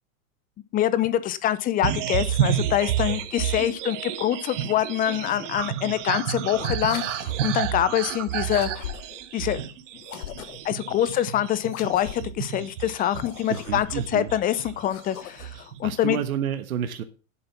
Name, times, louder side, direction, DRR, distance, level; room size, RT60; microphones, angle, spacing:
voice 1, 0.7-8.9 9.3-9.6 10.6-13.9 14.1-15.5 15.8-16.2, left 12 dB, 20° left, 16 dB, 0.7 m, -25 dB
sound 1, 1.8-14.9 15.2-15.9, right 11 dB, 60° right, 1.4 m, -30 dB
sound 2, 6.8-7.6 8.5-9.3 10.0-10.8 11.6-12.4 13.1-14.1 14.7-15.6, left 10 dB, 90° left, 1.5 m, -40 dB
voice 2, 13.5-14.3 15.8-17.0, right 9 dB, 85° right, 9 dB, 1.4 m, -29 dB
10.5 x 7.7 x 5.9 m, 0.34 s
supercardioid pair, 145°, 41 cm